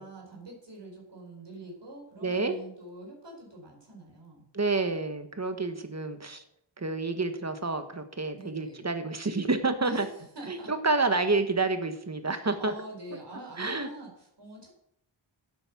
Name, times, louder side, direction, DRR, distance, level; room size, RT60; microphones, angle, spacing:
voice 1, 0.0-4.5 8.3-8.9 9.8-10.7 12.6-14.7, right 2 dB, 60° right, -1 dB, 4.6 m, -45 dB
voice 2, 2.2-2.6 4.5-6.4 6.8-10.1 10.5-12.7 13.6-13.9, right 3 dB, 35° right, 9 dB, 1.5 m, -29 dB
11.5 x 8.3 x 6.2 m, 0.74 s
wide cardioid pair, 75°, 48 cm